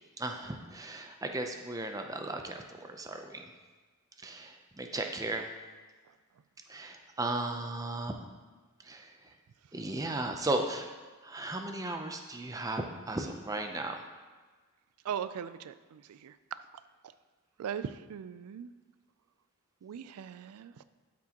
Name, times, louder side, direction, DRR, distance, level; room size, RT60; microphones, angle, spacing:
voice 1, 0.2-3.5 4.2-5.5 6.7-8.2 8.8-9.1 9.7-10.9 11.2-14.0, right 2 dB, 15° right, 4 dB, 0.5 m, -36 dB
voice 2, 15.0-16.6 17.6-18.7 19.8-20.8, right 8 dB, 85° right, 13 dB, 0.3 m, -39 dB
12.0 x 6.0 x 2.9 m, 1.4 s
head